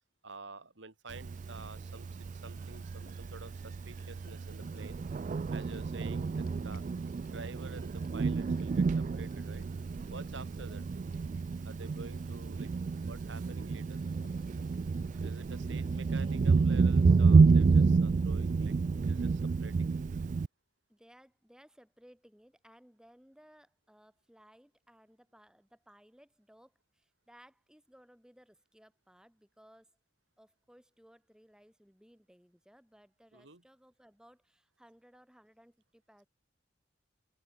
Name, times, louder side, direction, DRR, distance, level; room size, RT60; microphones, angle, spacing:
voice 1, 0.2-5.0 5.5-6.8 7.2-9.7 10.1-10.8 11.6-12.7 13.1-14.1 15.2-18.7 19.0-20.0 33.3-33.6, right 3 dB, 70° right, 2.5 m, -49 dB
Thunder, 1.1-20.5, right 4 dB, 40° right, 0.3 m, -29 dB
Boiling, 1.3-17.9, left 4 dB, 45° left, 3.4 m, -65 dB
voice 2, 15.1-16.4 20.9-29.9 30.4-36.3, equal, 5° right, 2.7 m, -61 dB
head